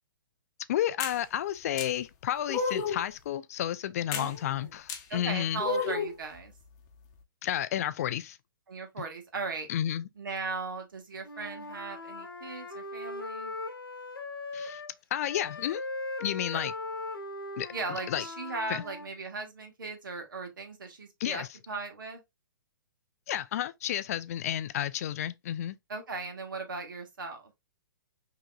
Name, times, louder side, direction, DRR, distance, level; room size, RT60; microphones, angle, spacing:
voice 1, 0.7-5.6 7.4-8.4 9.7-10.0 14.5-14.8 15.1-15.8 16.2-16.7 17.6-17.7 18.1-18.2 18.7-18.8 21.2-21.5 23.3-25.8, left 11 dB, 45° left, 0.3 m, -31 dB
sound 1, 1.0-1.2 1.8-1.9 2.5-3.0 4.1-4.3 4.9-5.0 5.6-6.2, left 5 dB, 30° left, 0.8 m, -31 dB
voice 2, 4.1-4.8 5.1-6.5 8.7-9.7 10.1-13.5 16.5-16.6 17.7-22.2 25.9-27.5, right 3 dB, 65° right, 1.5 m, -38 dB
Wind instrument woodwind instrument, 11.2-14.9 15.2-19.1, left 2 dB, 85° left, 0.9 m, -39 dB
5.6 x 3.0 x 2.3 m
figure-of-eight pair, 120°, 12 cm